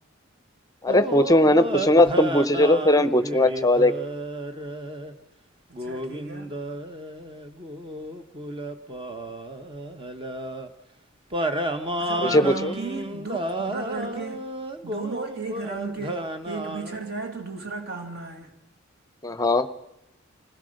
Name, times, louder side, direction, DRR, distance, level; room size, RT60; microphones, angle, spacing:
voice 1, 0.8-3.9 12.3-12.7 19.2-19.7, left 1 dB, 15° left, 14 dB, 0.8 m, -19 dB
sound 1, 0.9-5.1 5.7-10.7 11.3-17.0, right 1 dB, 25° right, 1.1 m, -32 dB
voice 2, 5.8-6.5 12.0-14.4 14.8-18.5, right 4 dB, 50° right, 2 dB, 2.6 m, -35 dB
25.5 x 16.5 x 6.5 m, 0.87 s
head